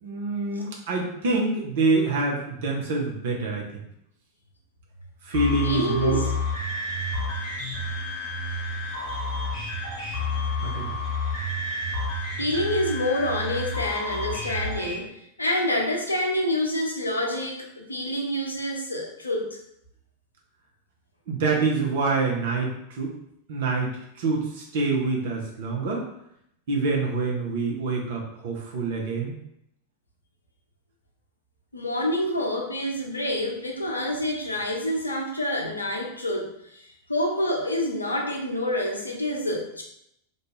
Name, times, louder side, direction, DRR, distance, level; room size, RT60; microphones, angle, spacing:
voice 1, 0.0-3.6 5.2-6.2 10.6-11.0 21.3-23.1 23.5-26.0 26.7-29.3, right 3 dB, 55° right, -1 dB, 0.7 m, -26 dB
sound 1, 5.3-14.9, left 2 dB, 45° left, 1.0 m, -30 dB
voice 2, 5.6-6.3 10.2-10.3 10.6-10.9 12.4-15.1 15.4-19.6 31.7-39.8, left 1 dB, 80° left, 1 dB, 0.5 m, -27 dB
2.6 x 2.3 x 3.0 m, 0.76 s
figure-of-eight pair, 90°, 0 cm